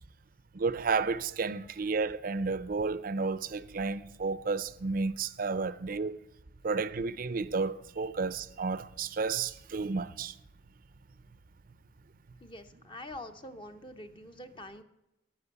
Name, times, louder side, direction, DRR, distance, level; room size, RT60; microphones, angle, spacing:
voice 1, 0.5-6.2 6.6-10.3, right 4 dB, 50° right, 0.5 m, -32 dB
voice 2, 12.4-14.8, left 1 dB, 25° left, 0.7 m, -45 dB
14.0 x 6.1 x 8.1 m
head